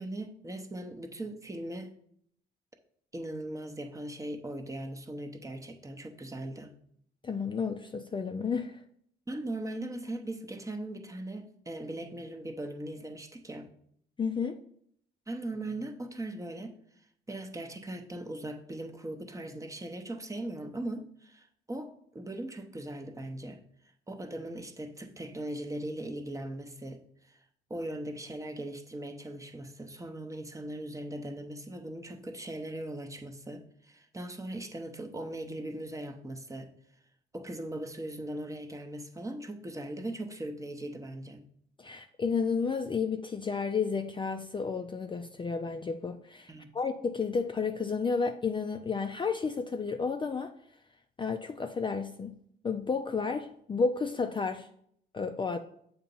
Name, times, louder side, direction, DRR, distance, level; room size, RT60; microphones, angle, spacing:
voice 1, 0.0-1.9 3.1-6.7 9.3-13.7 15.3-16.8 17.3-23.6 24.1-27.4 27.7-36.7 37.3-41.4 46.5-46.7, right 1 dB, 15° right, 0.7 m, -39 dB
voice 2, 7.2-8.8 14.2-14.6 41.8-50.5 51.2-52.4 52.6-54.7 55.1-55.6, left 5 dB, 25° left, 0.4 m, -32 dB
7.1 x 2.9 x 5.3 m
cardioid pair, 90°, 20 cm